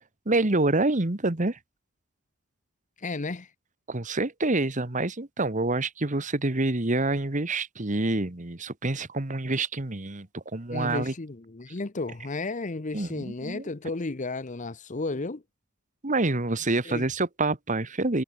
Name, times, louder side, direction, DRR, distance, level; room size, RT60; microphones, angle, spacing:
voice 1, 0.2-1.6 3.9-11.1 12.9-13.6 16.0-18.2, right 2 dB, 40° right, 1.5 m, -27 dB
voice 2, 3.0-3.5 10.7-15.4 16.8-17.1, left 3 dB, 35° left, 0.9 m, -33 dB
head